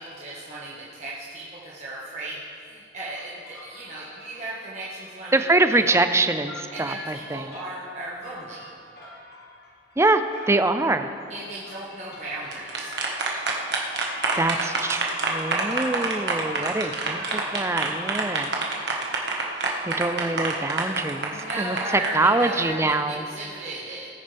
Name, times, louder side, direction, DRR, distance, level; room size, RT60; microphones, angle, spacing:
voice 1, 0.0-5.4 5.7-6.0 6.7-8.6 11.3-12.9 21.3-24.1, right 2 dB, 35° right, -7 dB, 1.5 m, -36 dB
sound 1, 3.0-18.1, left 1 dB, 55° left, 2.2 m, -46 dB
voice 2, 5.3-7.5 10.0-11.1 14.4-18.5 19.8-23.2, right 2 dB, 15° right, 9 dB, 0.4 m, -24 dB
sound 2, 12.3-22.1, right 3 dB, 65° right, 1.5 m, -27 dB
18.5 x 9.8 x 3.5 m, 2.5 s
head